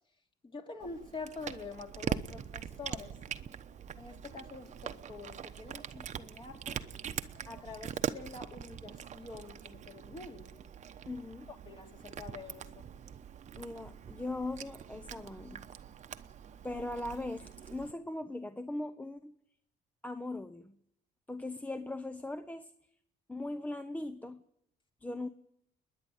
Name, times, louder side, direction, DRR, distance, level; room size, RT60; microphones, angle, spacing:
voice 1, 0.4-3.2 4.0-6.8 7.5-10.6 11.6-12.9, left 4 dB, 30° left, 4 dB, 3.0 m, -46 dB
Cat, 0.8-17.9, right 8 dB, 45° right, 1.0 m, -43 dB
voice 2, 11.0-11.5 13.5-15.7 16.6-19.3 20.0-20.8 21.3-22.7 23.3-24.4 25.0-25.3, left 2 dB, 10° left, 10 dB, 0.8 m, -39 dB
29.0 x 10.5 x 9.3 m, 0.77 s
cardioid pair, 110°, 17 cm